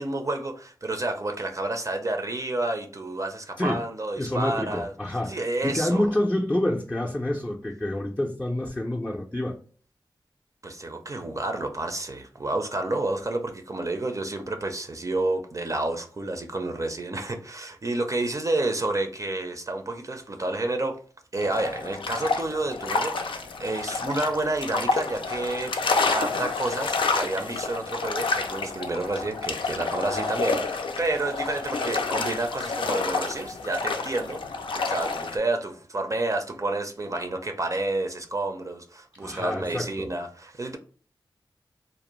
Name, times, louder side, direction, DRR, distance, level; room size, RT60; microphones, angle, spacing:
voice 1, 0.0-4.9 5.3-6.1 10.6-21.0 21.3-34.4 34.7-40.8, right 2 dB, 40° right, 0.5 m, -30 dB
voice 2, 4.2-5.4 5.6-9.6 39.2-40.1, left 1 dB, 15° left, 0.5 m, -27 dB
sound 1, 21.4-35.4, left 4 dB, 75° left, 0.4 m, -29 dB
2.5 x 2.0 x 3.0 m
cardioid pair, 40°, 9 cm